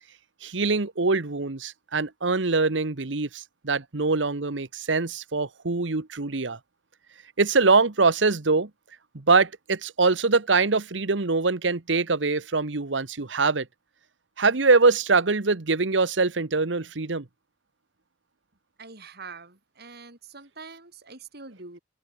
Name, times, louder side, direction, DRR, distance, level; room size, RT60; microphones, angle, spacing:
voice 1, 0.4-6.6 7.4-8.7 9.1-13.7 14.4-17.2, right 4 dB, 75° right, 1.2 m, -23 dB
voice 2, 18.8-21.8, right 4 dB, 60° right, 5.4 m, -44 dB
open air
head